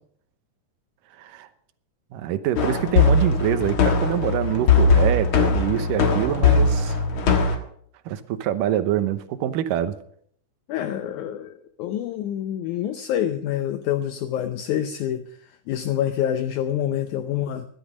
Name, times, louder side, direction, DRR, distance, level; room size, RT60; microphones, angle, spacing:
voice 1, 1.2-1.5 2.1-7.0 7.4-7.6 8.1-10.0, right 11 dB, 70° right, 11 dB, 2.4 m, -25 dB
sound 1, 2.6-7.6, left 4 dB, 55° left, 1.6 m, -20 dB
voice 2, 10.7-15.2 15.7-17.7, left 10 dB, 75° left, 8 dB, 1.8 m, -26 dB
16.0 x 12.0 x 5.1 m, 0.63 s
omnidirectional pair, 4.3 m